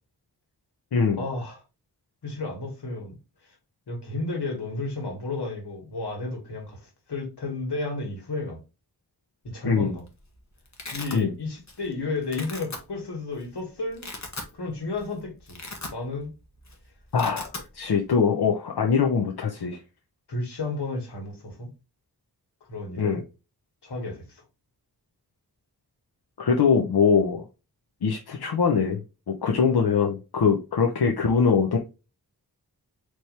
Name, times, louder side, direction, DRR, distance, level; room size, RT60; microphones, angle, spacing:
voice 1, 1.2-1.6 2.2-3.1 3.9-6.8 7.1-8.6 9.4-10.0 10.9-14.1 14.5-15.6 15.9-16.3 20.3-21.7 22.7-23.2 23.8-24.2, left 2 dB, 90° left, 1.9 m, -32 dB
voice 2, 9.6-10.0 11.1-11.3 17.1-19.8 23.0-23.2 26.4-27.5 28.0-29.0 29.3-31.8, left 5 dB, 70° left, 0.8 m, -22 dB
Domestic sounds home sounds, 9.7-10.1 10.3-11.2 11.7-11.9 12.2-12.8 13.4-13.5 13.9-14.5 14.9-15.1 15.4-16.3 16.6-16.7 17.0-17.7, left 3 dB, 45° left, 1.3 m, -38 dB
4.2 x 3.2 x 3.2 m
wide cardioid pair, 80°, 40 cm